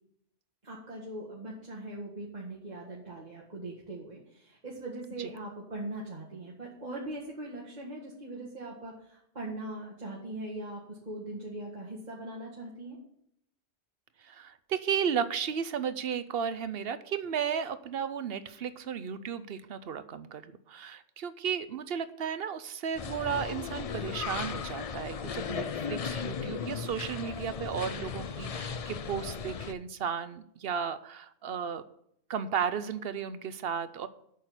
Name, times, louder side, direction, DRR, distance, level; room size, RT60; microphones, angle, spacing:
voice 1, 0.6-13.0, right 2 dB, 40° right, -5 dB, 2.0 m, -41 dB
voice 2, 14.2-31.8 32.3-34.1, right 7 dB, 65° right, 14 dB, 0.9 m, -34 dB
sound 1, 23.0-29.7, left 6 dB, 45° left, 0.5 m, -36 dB
8.5 x 6.6 x 7.9 m, 0.72 s
omnidirectional pair, 1.1 m